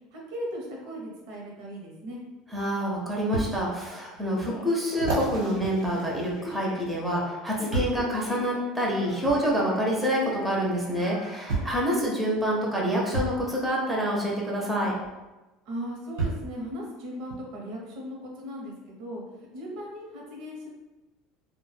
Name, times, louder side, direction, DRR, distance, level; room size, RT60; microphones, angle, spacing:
voice 1, 0.1-2.2 15.6-20.7, equal, 70° right, -2 dB, 0.7 m, -38 dB
sound 1, 2.2-2.3 3.3-3.5 4.1-4.2 4.9-6.8 7.7-8.1 9.2-9.4 10.7-10.8 11.5-11.8 13.1-13.4 15.0-15.1 16.2-16.5 17.3-17.4, right 3 dB, 90° right, 1.0 m, -31 dB
voice 2, 2.5-14.9, equal, 10° right, -3 dB, 0.5 m, -27 dB
Telephone, 3.9-4.0 4.4-5.8 6.4-8.7 8.9-11.7, left 2 dB, 60° left, 0.5 m, -43 dB
2.1 x 2.1 x 3.2 m, 1.1 s
supercardioid pair, 125°, 0 cm